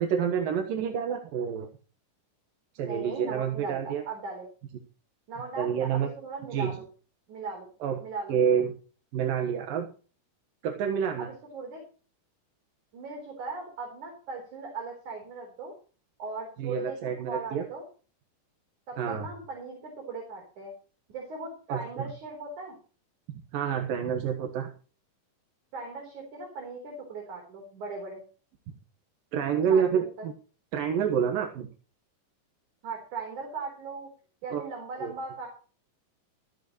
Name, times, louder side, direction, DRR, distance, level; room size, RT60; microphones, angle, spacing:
voice 1, 0.0-1.7 2.7-4.0 5.6-6.1 6.5-6.7 7.8-8.0 8.3-8.7 9.1-9.9 10.6-11.3 16.6-17.6 19.0-19.3 21.7-22.1 23.5-24.7 29.3-30.3 30.7-31.7 34.5-34.6 35.0-35.1, right 7 dB, 90° right, 3 dB, 3.2 m, -28 dB
voice 2, 2.8-4.5 5.3-6.9 7.3-7.7 8.0-8.4 11.2-11.8 12.9-15.7 16.2-17.8 18.9-20.7 21.1-22.8 25.7-28.2 29.7-30.0 32.8-34.1 34.4-35.5, right 4 dB, 60° right, 1 dB, 5.3 m, -38 dB
15.5 x 13.5 x 3.1 m, 0.38 s
omnidirectional pair, 3.9 m